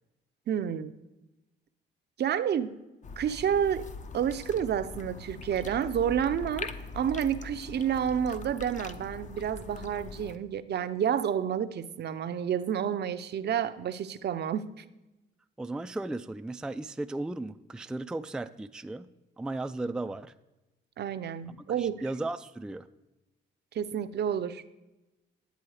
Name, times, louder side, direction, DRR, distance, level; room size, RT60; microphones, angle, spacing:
voice 1, 0.5-0.9 2.2-2.8 3.2-6.7 6.9-14.8 21.0-22.0 23.7-24.6, right 9 dB, 55° right, 12 dB, 0.6 m, -30 dB
sound 1, 3.0-10.4, left 4 dB, 40° left, 0.7 m, -42 dB
voice 2, 15.6-19.1 19.4-20.3 21.8-22.8, right 2 dB, 5° right, 9 dB, 0.3 m, -35 dB
10.5 x 7.6 x 4.8 m, 1.0 s
cardioid pair, 90°, 20 cm